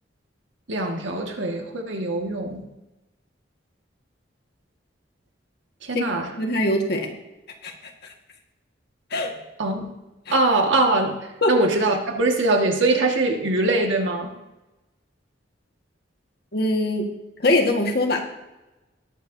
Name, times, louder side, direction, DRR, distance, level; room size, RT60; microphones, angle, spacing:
voice 1, 0.7-2.7 5.8-6.3 9.6-9.9 10.3-11.2 11.5-14.3, right 2 dB, 90° right, 2 dB, 1.7 m, -22 dB
voice 2, 6.4-7.1 7.6-7.7 9.1-9.3 10.3-10.4 11.4-11.5 16.5-17.1 17.4-18.2, left 1 dB, 55° left, 2 dB, 1.6 m, -22 dB
20.0 x 7.6 x 2.7 m, 1.0 s
head